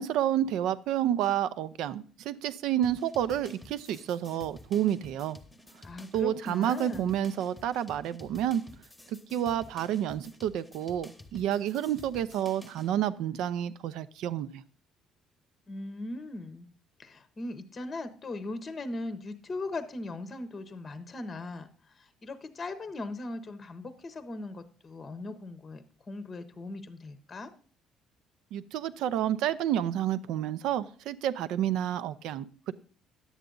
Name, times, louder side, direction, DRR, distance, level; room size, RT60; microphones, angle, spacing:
voice 1, 0.0-5.4 6.1-8.6 9.1-14.6 28.5-32.7, right 11 dB, 75° right, 15 dB, 0.6 m, -30 dB
sound 1, 2.8-12.9, left 1 dB, 5° left, 1.0 m, -52 dB
voice 2, 5.8-7.1 15.7-16.7 17.0-27.5, left 2 dB, 25° left, 11 dB, 0.8 m, -39 dB
11.0 x 8.1 x 3.8 m, 0.43 s
cardioid pair, 150°, 0 cm